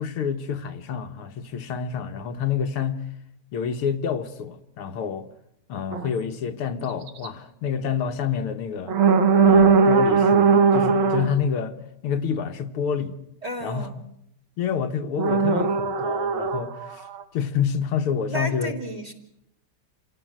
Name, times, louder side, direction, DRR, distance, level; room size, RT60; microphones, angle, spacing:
voice 1, 0.0-3.0 3.5-5.3 5.7-9.0 9.4-11.8 12.0-13.2 13.6-13.9 14.6-17.1 17.3-18.7, left 7 dB, 90° left, 2.2 m, -28 dB
sound 1, 5.9-6.1 7.1-7.3 8.9-11.3 15.2-17.2, right 5 dB, 65° right, 2.3 m, -19 dB
voice 2, 13.4-13.9 18.3-19.1, right 1 dB, 15° right, 2.8 m, -32 dB
28.0 x 17.5 x 7.8 m
omnidirectional pair, 2.4 m